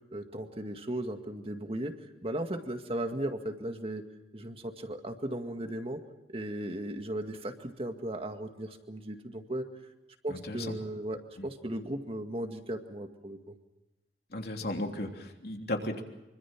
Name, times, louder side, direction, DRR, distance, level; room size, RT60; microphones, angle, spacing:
voice 1, 0.1-1.9 2.2-4.0 4.3-6.0 6.3-9.7 10.2-13.5, right 1 dB, 35° right, 6 dB, 2.0 m, -36 dB
voice 2, 10.3-10.8 11.4-11.5 14.3-16.0, left 1 dB, 60° left, 2 dB, 3.2 m, -35 dB
25.5 x 25.0 x 6.1 m, 1.0 s
head